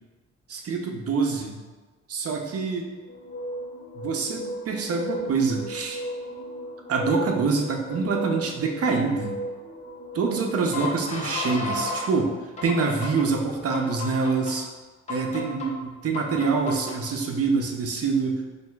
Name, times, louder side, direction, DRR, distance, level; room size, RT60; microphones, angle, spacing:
voice 1, 0.5-1.6 2.1-2.9 4.0-6.0 6.9-9.4 10.1-12.3 12.6-14.7 15.1-18.4, right 4 dB, 50° right, 2 dB, 0.7 m, -25 dB
sound 1, 3.1-12.1 12.6-13.3 13.7-14.5 15.1-15.7 16.1-17.0, left 1 dB, 20° left, 0.9 m, -34 dB
6.6 x 2.7 x 2.4 m, 1.3 s
cardioid pair, 90°, 30 cm